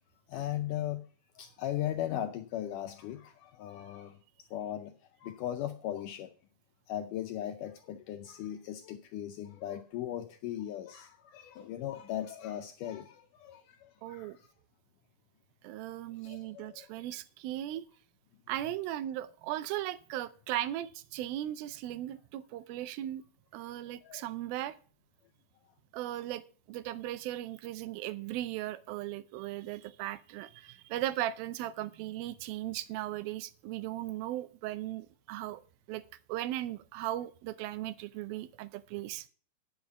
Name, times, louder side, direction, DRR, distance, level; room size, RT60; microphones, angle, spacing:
voice 1, 0.3-1.1 1.4-4.2 4.5-4.9 5.2-6.3 6.9-14.5 16.2-16.9 24.0-24.3, left 12 dB, 80° left, 1.9 m, -38 dB
voice 2, 14.0-14.4 15.6-17.8 18.5-23.2 23.5-24.8 25.9-26.4 26.7-35.6 35.9-36.0 36.3-39.3, right 14 dB, 90° right, 2.5 m, -37 dB
9.6 x 6.4 x 7.0 m
omnidirectional pair, 4.2 m